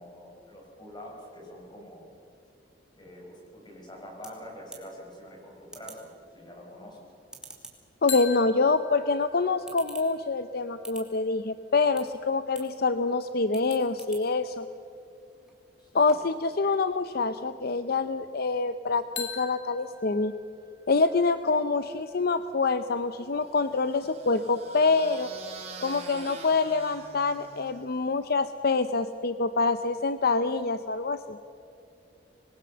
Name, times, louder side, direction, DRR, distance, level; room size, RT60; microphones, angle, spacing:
voice 1, 0.0-2.1 3.0-7.1 15.8-16.2, equal, 25° left, 0 dB, 6.0 m, -46 dB
sound 1, 3.6-16.4, right 2 dB, 5° right, 3.1 m, -52 dB
voice 2, 8.0-14.6 15.9-20.3 20.9-25.3 25.8-31.4, left 4 dB, 55° left, 11 dB, 0.7 m, -26 dB
sound 2, 8.1-11.9 19.1-23.0, left 6 dB, 75° left, 2.8 m, -43 dB
sound 3, 23.4-28.0, right 3 dB, 35° right, 4.3 m, -45 dB
26.0 x 21.5 x 6.9 m, 2.6 s
head